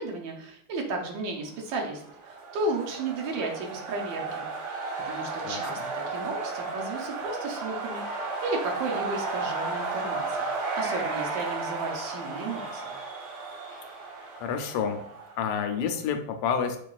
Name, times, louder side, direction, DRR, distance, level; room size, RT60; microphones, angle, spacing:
voice 1, 0.0-4.5 5.1-5.8 6.1-10.5 10.8-13.0, right 2 dB, 70° right, 1 dB, 1.3 m, -33 dB
sound 1, 1.8-15.6, right 3 dB, 90° right, 1.8 m, -34 dB
voice 2, 5.4-5.9 14.4-15.0 15.4-16.8, left 7 dB, 85° left, 6 dB, 1.5 m, -29 dB
5.9 x 2.3 x 2.3 m, 0.67 s
omnidirectional pair, 2.4 m